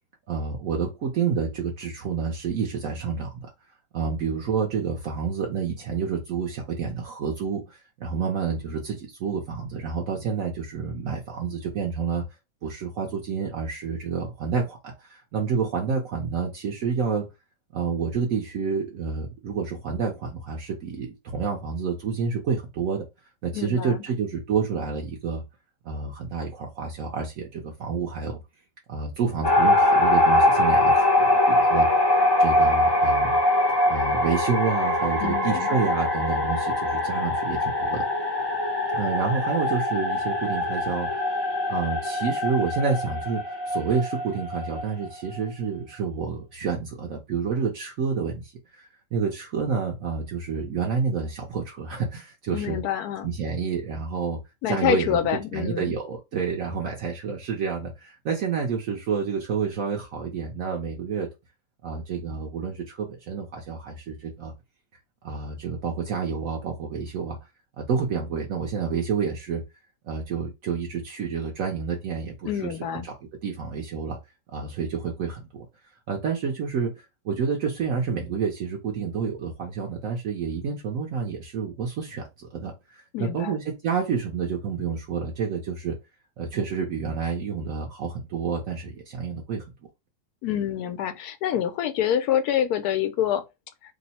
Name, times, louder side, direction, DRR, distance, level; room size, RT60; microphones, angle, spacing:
voice 1, 0.3-3.5 3.9-12.2 12.6-17.3 17.7-23.0 23.4-25.4 25.8-28.4 28.9-31.9 32.4-33.4 33.9-38.1 38.9-41.3 41.7-52.8 53.2-54.4 54.7-55.2 55.5-61.3 61.8-64.5 65.2-67.4 67.8-69.6 70.0-73.2 73.4-74.2 74.5-75.7 76.1-85.9 86.4-89.6, right 5 dB, 65° right, 1.0 m, -29 dB
voice 2, 23.5-24.0 35.2-35.9 52.5-53.3 54.6-56.0 72.4-73.1 83.1-83.6 90.4-93.4, left 10 dB, 85° left, 1.1 m, -26 dB
sound 1, 29.4-45.4, left 1 dB, 35° left, 0.4 m, -23 dB
3.0 x 2.0 x 4.1 m
omnidirectional pair, 1.6 m